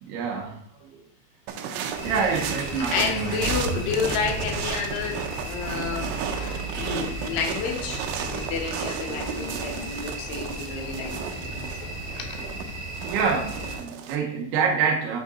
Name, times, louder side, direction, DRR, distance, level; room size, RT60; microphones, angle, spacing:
voice 1, 0.0-0.9 2.0-3.4 13.0-15.2, right 5 dB, 75° right, -1 dB, 2.6 m, -26 dB
sound 1, 1.5-14.2, right 7 dB, 90° right, 2.3 m, -34 dB
sound 2, 1.9-13.8, equal, 40° left, 0.6 m, -36 dB
Accelerating revving vroom, 2.1-8.5, right 3 dB, 50° right, 3.1 m, -36 dB
voice 2, 2.8-8.0 8.3-11.6 12.2-12.3, left 6 dB, 80° left, 3 dB, 2.6 m, -30 dB
8.5 x 3.6 x 4.2 m, 0.65 s
omnidirectional pair, 5.4 m